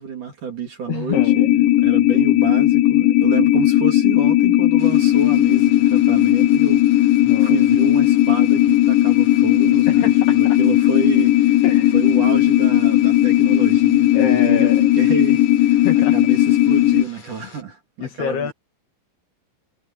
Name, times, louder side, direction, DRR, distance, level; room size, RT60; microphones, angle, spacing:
voice 1, 0.0-11.6 11.9-14.7 15.0-15.9 16.1-18.5, right 6 dB, 45° right, 4.5 m, -29 dB
voice 2, 0.9-1.5 7.2-7.7 9.9-10.6 11.6-12.0 14.1-14.9 15.8-16.1 18.0-18.5, left 8 dB, 60° left, 3.7 m, -27 dB
sound 1, 1.1-17.0, left 14 dB, 80° left, 2.8 m, -16 dB
sound 2, 4.8-17.6, left 5 dB, 40° left, 4.8 m, -45 dB
omnidirectional pair, 5.7 m